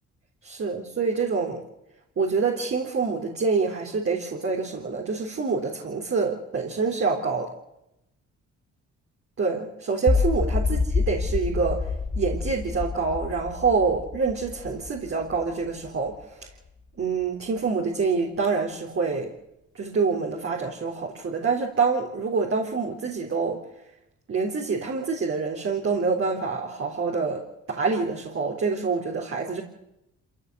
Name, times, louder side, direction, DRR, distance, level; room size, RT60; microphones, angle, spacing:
voice 1, 0.4-1.6 2.2-7.5 9.4-11.8 12.2-16.2 17.0-19.3 19.8-23.6 24.3-27.4 27.7-29.6, right 4 dB, 45° right, -1 dB, 3.8 m, -26 dB
sound 1, 10.1-16.1, left 4 dB, 25° left, 1.8 m, -27 dB
26.5 x 15.5 x 8.0 m, 0.88 s
cardioid pair, 90°, 30 cm